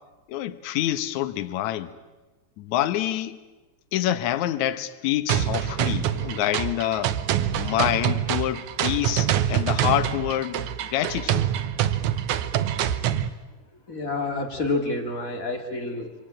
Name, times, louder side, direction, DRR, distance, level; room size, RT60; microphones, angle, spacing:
voice 1, 0.3-1.9 2.6-3.4 3.9-7.1 7.6-10.7 10.9-11.4, left 12 dB, 70° left, 1.9 m, -26 dB
sound 1, 5.3-13.3, right 10 dB, 75° right, 1.8 m, -25 dB
voice 2, 13.9-16.1, left 3 dB, 25° left, 2.1 m, -28 dB
26.5 x 24.0 x 8.8 m
omnidirectional pair, 4.6 m